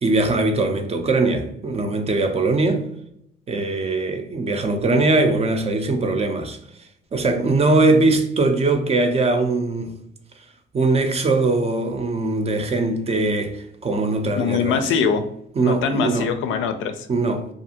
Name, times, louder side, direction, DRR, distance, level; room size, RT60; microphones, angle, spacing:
voice 1, 0.0-2.8 3.5-6.6 7.1-10.0 10.7-14.9 15.6-16.3 17.1-17.5, right 2 dB, 30° right, 0.5 m, -21 dB
voice 2, 14.4-15.2 15.6-17.1, left 6 dB, 80° left, 0.4 m, -22 dB
2.5 x 2.3 x 2.7 m
cardioid pair, 90°, 20 cm